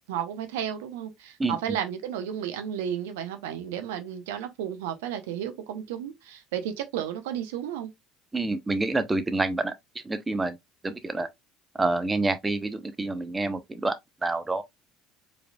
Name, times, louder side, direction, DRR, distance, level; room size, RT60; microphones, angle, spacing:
voice 1, 0.1-7.9, right 9 dB, 75° right, 0.7 m, -33 dB
voice 2, 1.4-1.8 8.3-9.7 10.0-10.6 10.8-11.3 11.7-13.9 14.2-14.6, right 2 dB, 20° right, 0.8 m, -27 dB
4.7 x 3.5 x 2.3 m
hypercardioid pair, 65°, 0 cm